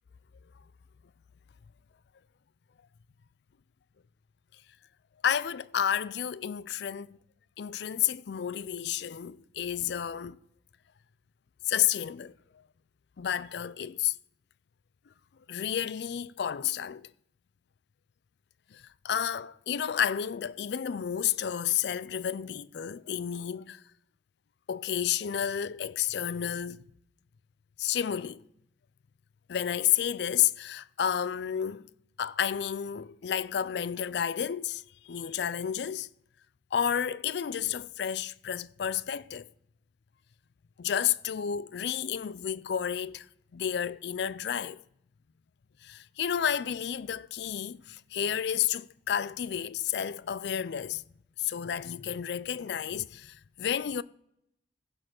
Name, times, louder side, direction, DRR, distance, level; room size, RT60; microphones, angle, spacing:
voice 1, 5.2-7.2 7.6-10.4 11.7-12.3 13.2-14.1 15.5-17.1 18.7-23.8 24.7-26.8 27.8-28.4 29.5-31.9 32.2-36.1 36.7-39.5 40.8-43.3 43.5-44.8 45.8-51.0 51.4-54.0, left 9 dB, 65° left, 0.4 m, -31 dB
15.5 x 5.3 x 5.9 m
head